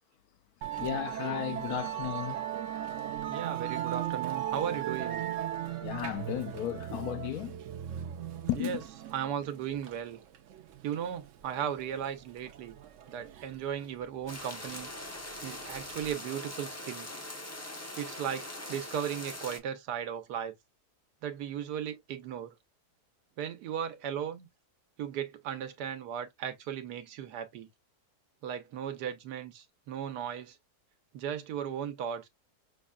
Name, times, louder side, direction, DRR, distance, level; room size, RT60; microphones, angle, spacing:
Musical instrument, 0.6-16.1, right 11 dB, 65° right, 0.8 m, -38 dB
voice 1, 0.8-2.4 5.8-7.6 8.5-8.8, left 12 dB, 75° left, 1.0 m, -34 dB
voice 2, 3.3-5.2 8.5-8.8 9.1-10.2 10.8-12.8 13.1-14.9 15.4-17.1 18.0-20.5 21.2-22.5 23.4-24.5 25.0-27.7 28.4-30.6 31.1-32.3, right 9 dB, 85° right, 1.4 m, -36 dB
sound 1, 14.3-19.6, left 1 dB, 20° left, 0.4 m, -42 dB
6.1 x 2.1 x 2.4 m
omnidirectional pair, 1.7 m